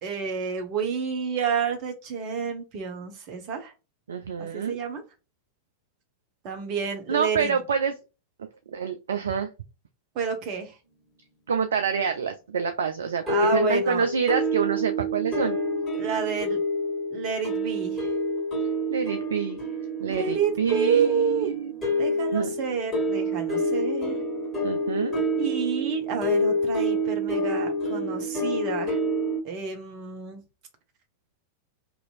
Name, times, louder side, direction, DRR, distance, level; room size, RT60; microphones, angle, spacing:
voice 1, 0.0-3.7 4.4-5.0 6.4-7.5 10.1-10.7 13.2-14.1 15.9-16.6 17.1-18.1 20.1-21.5 22.0-24.2 25.4-29.0 29.4-30.4, right 6 dB, 40° right, 5 dB, 0.8 m, -29 dB
voice 2, 4.1-4.8 7.1-7.9 8.4-9.5 11.5-15.6 18.9-19.6 20.0-21.7 22.3-22.5 24.6-25.2, right 6 dB, 65° right, 7 dB, 0.3 m, -27 dB
sound 1, 13.3-29.4, equal, 10° left, 1.5 m, -28 dB
2.9 x 2.6 x 2.4 m, 0.30 s
figure-of-eight pair, 90°, 0 cm